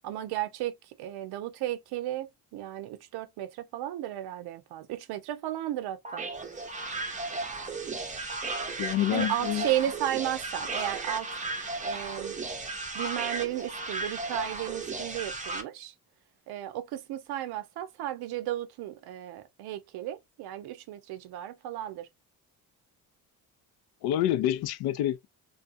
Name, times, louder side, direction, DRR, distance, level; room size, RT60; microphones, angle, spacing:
voice 1, 0.0-6.3 9.1-11.3 11.8-12.4 12.9-15.9 16.5-22.1, right 13 dB, 70° right, 0.6 m, -34 dB
sound 1, 6.0-15.6, right 3 dB, 20° right, 0.6 m, -35 dB
voice 2, 8.8-9.7 24.0-25.3, left 12 dB, 70° left, 0.5 m, -27 dB
2.4 x 2.3 x 2.5 m
cardioid pair, 85°, 39 cm